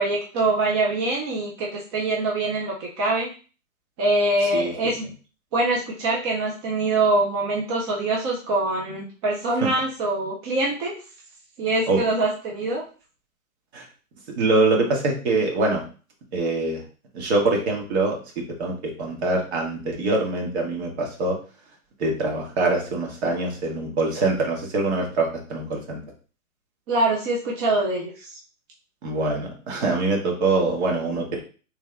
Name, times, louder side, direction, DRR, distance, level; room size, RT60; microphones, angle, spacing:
voice 1, 0.0-3.3 4.0-5.1 5.5-10.9 11.6-12.8 26.9-28.4, right 2 dB, 20° right, -2 dB, 0.5 m, -24 dB
voice 2, 14.4-15.8 16.3-16.8 17.1-18.2 18.6-21.4 22.0-26.0 29.0-31.4, right 2 dB, 50° right, 0 dB, 1.5 m, -24 dB
3.4 x 2.9 x 3.3 m, 0.37 s
hypercardioid pair, 130°, 41 cm